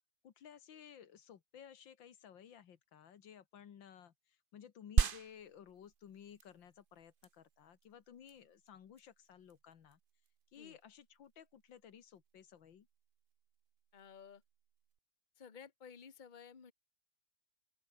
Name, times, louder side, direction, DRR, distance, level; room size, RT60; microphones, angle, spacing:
voice 1, 0.2-10.0 10.5-12.9, left 8 dB, 85° left, 2.2 m, -56 dB
sound 1, 5.0-14.9, right 6 dB, 40° right, 0.8 m, -40 dB
voice 2, 13.9-14.4 15.4-16.7, left 6 dB, 25° left, 1.4 m, -54 dB
open air
omnidirectional pair, 2.0 m